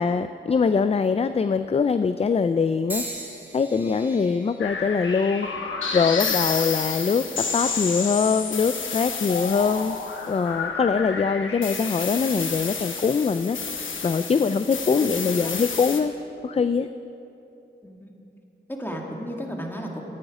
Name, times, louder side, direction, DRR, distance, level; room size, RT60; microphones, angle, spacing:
voice 1, 0.0-3.0 3.5-10.0 10.3-16.1 16.4-16.9, left 5 dB, 30° left, 11 dB, 0.3 m, -23 dB
sound 1, 2.9-7.0 7.7-8.2 9.1-9.3, right 1 dB, 10° right, 2.3 m, -41 dB
sound 2, 4.6-16.0, left 5 dB, 85° left, 0.9 m, -30 dB
voice 2, 15.0-15.5 17.8-18.1 18.7-20.0, equal, 10° left, 0 dB, 1.9 m, -34 dB
13.0 x 9.0 x 4.9 m, 2.8 s
cardioid pair, 40°, 20 cm